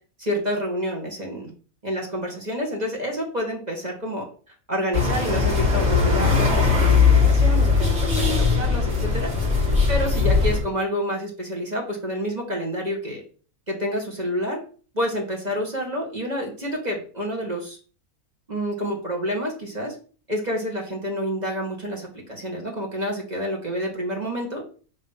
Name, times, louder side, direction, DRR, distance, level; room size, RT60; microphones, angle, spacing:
voice 1, 0.2-1.5 1.8-4.3 4.7-9.3 9.9-13.2 13.7-14.6 14.9-17.8 18.5-20.0 20.3-24.6, equal, 30° right, 0 dB, 1.8 m, -28 dB
sound 1, 4.9-10.6, left 5 dB, 45° right, 2.5 m, -19 dB
6.2 x 3.6 x 5.7 m, 0.39 s
omnidirectional pair, 1.5 m